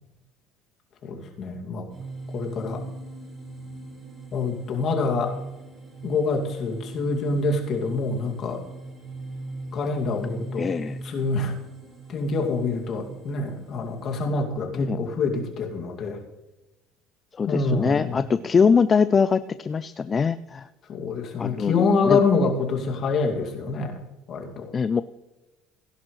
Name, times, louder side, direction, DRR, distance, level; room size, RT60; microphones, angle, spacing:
voice 1, 1.0-1.9 2.3-2.8 4.3-5.3 6.0-8.6 9.7-10.7 11.0-11.5 12.1-16.2 17.5-18.1 20.9-24.0 24.3-24.7, left 3 dB, 45° left, 2 dB, 2.3 m, -26 dB
sound 1, 1.9-14.3, right 2 dB, 25° right, 2.9 m, -40 dB
voice 2, 10.6-11.0 14.7-15.0 17.3-20.7 21.4-22.2 24.7-25.0, left 5 dB, 25° left, 14 dB, 0.3 m, -22 dB
16.5 x 10.5 x 3.2 m, 1.1 s
cardioid pair, 125°, 0 cm